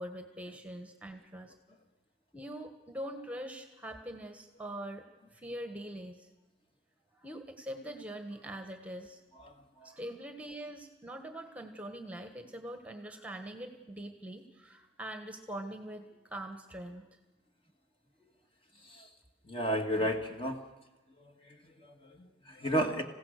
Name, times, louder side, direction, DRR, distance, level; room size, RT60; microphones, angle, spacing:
voice 1, 0.0-1.5 2.3-5.1 5.3-6.3 7.2-9.2 9.8-17.1 18.2-18.3, right 1 dB, 10° right, 6 dB, 1.3 m, -43 dB
voice 2, 9.4-9.9 18.8-19.1 19.5-20.6 21.2-23.0, equal, 30° left, 4 dB, 1.7 m, -34 dB
27.0 x 16.0 x 6.5 m, 1.1 s
head